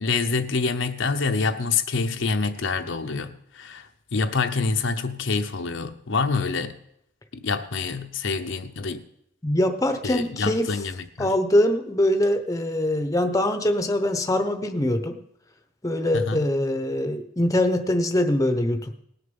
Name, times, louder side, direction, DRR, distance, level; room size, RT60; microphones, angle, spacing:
voice 1, 0.0-3.9 4.1-6.7 7.3-9.0 10.0-11.3 16.1-16.5, left 4 dB, 65° left, 0.8 m, -26 dB
voice 2, 9.4-10.8 11.2-15.2 15.8-18.9, left 1 dB, 15° left, 0.8 m, -23 dB
19.0 x 6.7 x 5.4 m
head